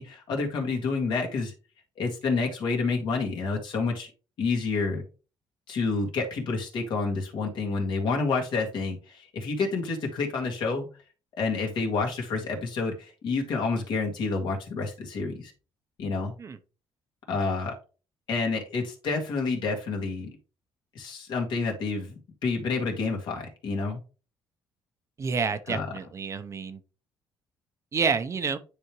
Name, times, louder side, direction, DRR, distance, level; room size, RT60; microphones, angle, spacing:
voice 1, 0.0-1.5 2.0-4.1 4.4-5.0 5.7-10.9 11.4-15.5 16.0-16.3 17.3-17.7 18.3-20.3 21.0-24.0 25.7-25.9, left 4 dB, 65° left, 2.1 m, -29 dB
voice 2, 25.2-26.8 27.9-28.6, right 5 dB, 35° right, 0.7 m, -28 dB
9.6 x 3.5 x 3.0 m
cardioid pair, 105°, 8 cm